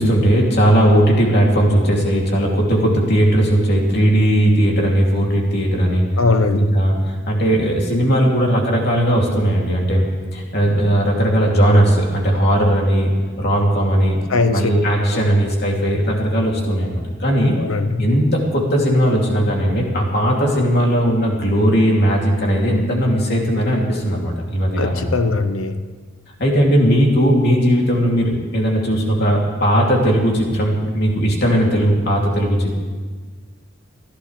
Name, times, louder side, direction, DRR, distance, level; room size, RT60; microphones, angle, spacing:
voice 1, 0.0-6.0 6.5-6.9 7.3-10.1 10.3-13.1 13.4-14.2 14.5-17.5 18.0-25.1 26.4-32.7, equal, 55° left, -2 dB, 2.9 m, -17 dB
voice 2, 6.2-6.7 14.3-14.7 15.1-15.3 17.6-18.1 24.8-25.8, left 3 dB, 85° left, 9 dB, 0.9 m, -20 dB
28.5 x 11.5 x 3.3 m, 1.5 s
head